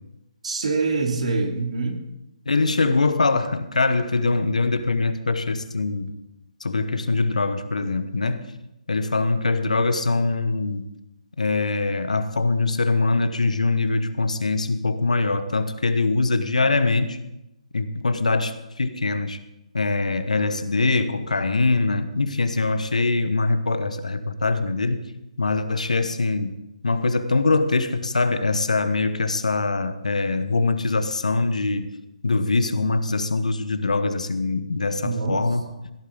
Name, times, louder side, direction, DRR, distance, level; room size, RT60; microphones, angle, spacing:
voice 1, 0.4-2.0 35.0-35.7, right 3 dB, 65° right, 2 dB, 2.9 m, -25 dB
voice 2, 2.5-6.1 6.6-8.5 8.9-10.9 11.4-17.2 17.7-19.4 19.7-25.1 25.4-26.6 26.8-31.9 32.2-35.9, left 3 dB, 80° left, 10 dB, 1.2 m, -23 dB
16.5 x 11.5 x 4.0 m, 0.91 s
figure-of-eight pair, 135°, 4 cm